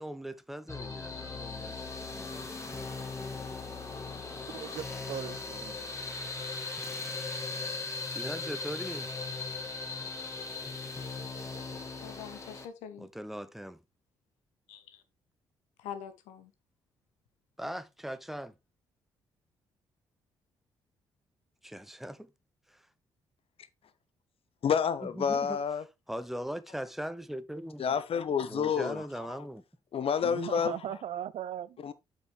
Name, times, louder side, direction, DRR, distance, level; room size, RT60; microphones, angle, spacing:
voice 1, 0.0-1.7 2.1-2.9 8.1-9.1 13.0-13.8 17.6-18.5 21.6-22.3 25.2-25.6 26.1-27.8 28.5-29.6, equal, ahead, 0.9 m, -40 dB
sound 1, 0.7-12.7, left 4 dB, 25° left, 2.2 m, -38 dB
voice 2, 4.5-5.7 30.2-31.8, right 10 dB, 55° right, 0.5 m, -38 dB
voice 3, 12.0-13.1 14.7-15.0 15.8-16.5, left 9 dB, 70° left, 1.0 m, -44 dB
voice 4, 24.6-25.8 27.8-29.4 29.9-30.8 31.8-31.9, left 7 dB, 50° left, 0.9 m, -29 dB
7.5 x 5.8 x 3.4 m
hypercardioid pair, 45°, 12 cm